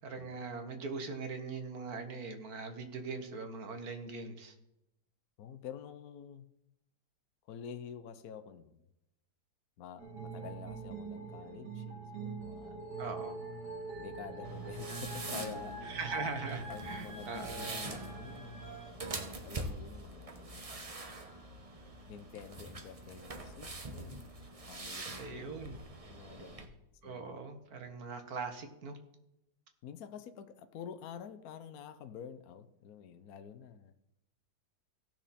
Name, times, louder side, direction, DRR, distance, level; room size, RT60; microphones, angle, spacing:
voice 1, 0.0-4.5 13.0-13.4 15.9-18.0 25.2-25.8 27.0-29.0, right 4 dB, 65° right, 6 dB, 1.7 m, -41 dB
voice 2, 5.4-6.5 7.5-8.8 9.8-13.1 14.0-16.0 16.7-18.7 19.4-20.9 22.1-24.4 24.7-25.8 26.0-26.8 27.0-27.4 29.8-33.9, left 8 dB, 65° left, 10 dB, 1.1 m, -48 dB
sound 1, 10.0-18.9, right 3 dB, 80° right, 3.0 m, -44 dB
sound 2, 14.4-26.7, right 2 dB, 25° right, 0.9 m, -44 dB
16.5 x 6.1 x 4.2 m, 0.87 s
omnidirectional pair, 1.8 m